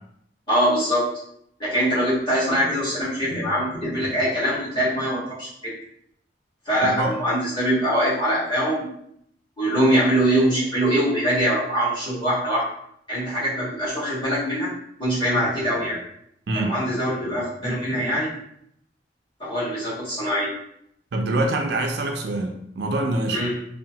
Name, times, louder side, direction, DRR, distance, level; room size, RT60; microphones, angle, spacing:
voice 1, 0.5-1.0 1.6-5.7 6.6-8.9 9.6-12.6 13.1-14.7 15.0-16.0 16.5-18.3 19.4-20.5 23.3-23.5, equal, 25° left, -11 dB, 1.4 m, -23 dB
voice 2, 6.8-7.2 16.5-16.7 21.1-23.5, right 2 dB, 60° right, 2 dB, 0.4 m, -25 dB
2.8 x 2.1 x 2.8 m, 0.72 s
head